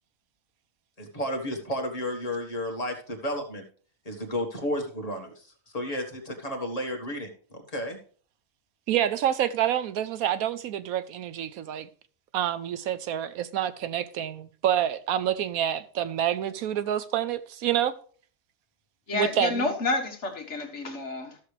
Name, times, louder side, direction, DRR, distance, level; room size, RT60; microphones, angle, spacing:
voice 1, 1.0-3.6 4.0-8.0, equal, 25° left, 1.7 m, -32 dB
voice 2, 8.9-11.9 12.3-17.9 19.1-19.6, right 10 dB, 85° right, 1.1 m, -27 dB
voice 3, 19.1-21.4, left 3 dB, 55° left, 1.6 m, -29 dB
13.5 x 6.6 x 3.3 m
omnidirectional pair, 1.5 m